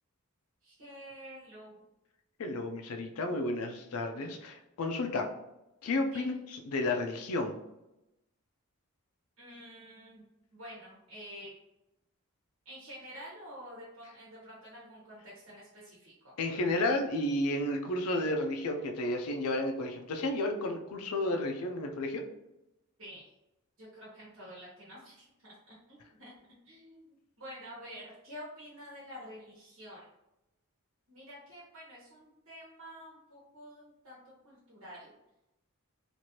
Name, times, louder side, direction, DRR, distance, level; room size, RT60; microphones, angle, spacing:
voice 1, 0.6-1.8 6.1-6.3 9.4-10.3 10.5-11.5 12.6-16.3 23.0-23.3 23.8-26.3 26.6-30.1 31.1-35.1, equal, 75° right, -8 dB, 1.2 m, -49 dB
voice 2, 2.4-5.3 5.8-6.3 6.7-7.6 16.4-22.2, left 2 dB, 85° left, 4 dB, 0.5 m, -32 dB
3.1 x 2.5 x 2.8 m, 0.90 s
head